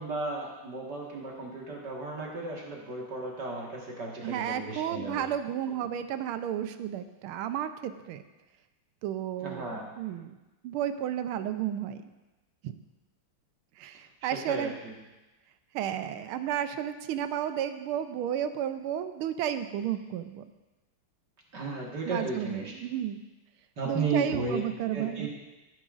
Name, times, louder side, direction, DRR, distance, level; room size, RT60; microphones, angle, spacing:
voice 1, 0.0-5.3 9.4-9.9 14.2-14.9 21.5-22.7 23.8-24.6 24.9-25.3, right 3 dB, 55° right, -2 dB, 2.2 m, -34 dB
voice 2, 4.2-8.2 9.0-10.4 10.6-12.0 12.6-12.7 13.8-14.8 15.7-20.4 22.1-23.2 23.8-25.3, right 10 dB, 90° right, 10 dB, 1.5 m, -32 dB
15.0 x 8.9 x 2.5 m, 1.1 s
omnidirectional pair, 2.3 m